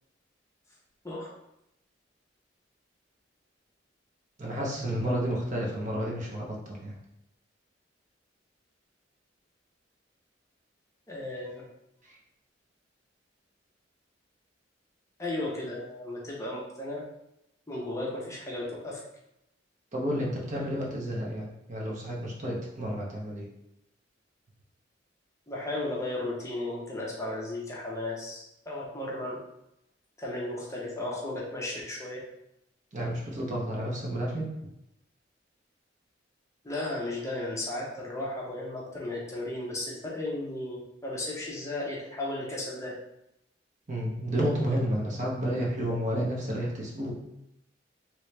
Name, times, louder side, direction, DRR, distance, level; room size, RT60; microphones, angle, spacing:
voice 1, 4.4-6.9 19.9-23.4 32.9-34.5 43.9-47.1, equal, 40° right, -2 dB, 0.8 m, -31 dB
voice 2, 11.1-11.6 15.2-17.0 17.7-19.0 25.5-29.4 30.2-32.2 36.6-42.9, left 2 dB, 15° left, -3 dB, 0.7 m, -35 dB
3.1 x 3.0 x 3.2 m, 0.84 s
head